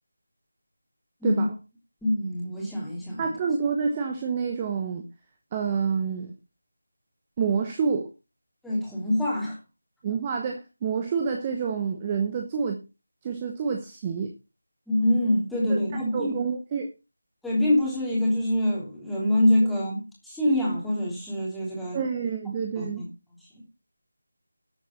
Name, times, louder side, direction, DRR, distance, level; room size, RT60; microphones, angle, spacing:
voice 1, 2.0-3.3 8.6-9.6 14.9-16.4 17.4-22.0 22.8-23.1, left 1 dB, ahead, 3.1 m, -25 dB
voice 2, 3.2-5.0 5.5-6.3 7.4-8.1 10.0-12.8 13.2-14.3 15.7-15.8 16.1-16.9 21.9-23.0, right 6 dB, 15° right, 1.1 m, -28 dB
12.0 x 8.5 x 4.1 m
figure-of-eight pair, 165°, 0 cm